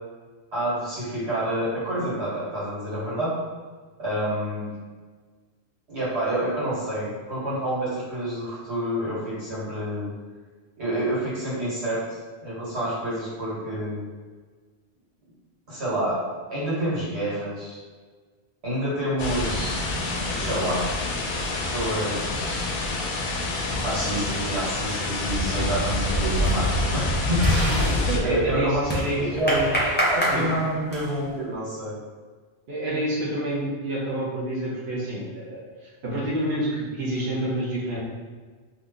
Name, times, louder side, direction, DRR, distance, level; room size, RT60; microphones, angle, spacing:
voice 1, 0.5-3.3 4.0-4.7 5.9-10.1 10.8-12.0 12.4-14.0 15.7-16.2 16.5-17.8 18.6-19.8 20.4-20.9 21.6-22.6 23.8-27.7 28.2-28.9 29.2-29.5 30.1-31.9, right 1 dB, 80° right, -9 dB, 1.7 m, -28 dB
sound 1, 19.2-28.2, left 2 dB, 60° left, 0.6 m, -27 dB
sound 2, 24.8-25.2 25.5-31.3, equal, 15° left, 0.5 m, -28 dB
sound 3, 25.2-29.5, right 1 dB, 15° right, 1.2 m, -31 dB
voice 2, 28.1-29.7 30.3-30.4 32.7-38.0, right 1 dB, 55° right, -7 dB, 0.8 m, -28 dB
2.8 x 2.4 x 3.6 m, 1.4 s
omnidirectional pair, 1.1 m